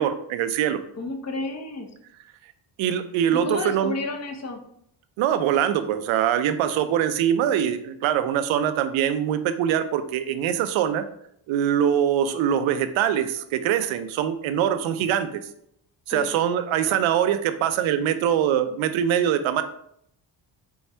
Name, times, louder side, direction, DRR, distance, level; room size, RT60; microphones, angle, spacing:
voice 1, 0.0-0.8 2.8-3.9 5.2-11.1 11.5-15.3 16.1-19.6, right 9 dB, 90° right, 10 dB, 0.5 m, -23 dB
voice 2, 1.0-1.9 3.3-4.6 16.1-16.3, left 3 dB, 35° left, 3 dB, 0.8 m, -31 dB
4.5 x 2.4 x 4.2 m, 0.72 s
cardioid pair, 80°, 46 cm